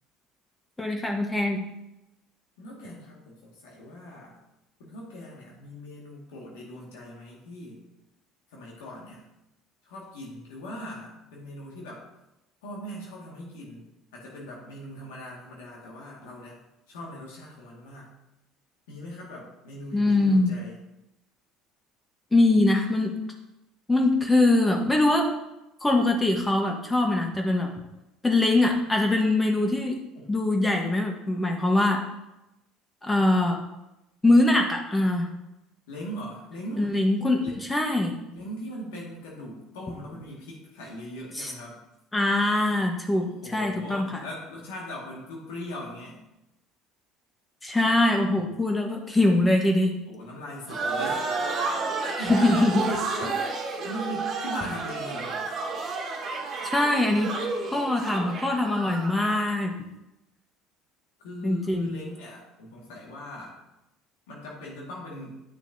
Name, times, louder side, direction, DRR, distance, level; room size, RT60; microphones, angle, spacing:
voice 1, 0.8-1.6 19.9-20.5 22.3-23.2 23.9-25.3 25.8-27.7 28.2-30.0 30.3-32.0 33.0-33.6 34.2-35.3 36.8-38.1 41.4-41.5 42.1-44.2 47.6-49.9 52.3-52.8 56.6-57.3 57.7-59.7 61.4-61.9, left 2 dB, 15° left, 2 dB, 1.2 m, -23 dB
voice 2, 2.6-4.4 4.8-7.8 8.5-9.3 9.8-12.1 12.6-13.9 14.1-16.6 16.9-18.1 18.9-20.8 30.1-30.3 35.9-36.9 37.4-37.6 38.3-41.8 43.1-46.2 50.1-51.3 52.0-52.7 53.2-53.5 53.8-55.4 61.2-63.5 64.3-65.3, equal, 85° left, -3 dB, 1.9 m, -40 dB
sound 1, 50.7-59.5, right 4 dB, 50° right, 1.5 m, -31 dB
10.0 x 6.1 x 2.7 m, 0.92 s
hypercardioid pair, 80°, 0 cm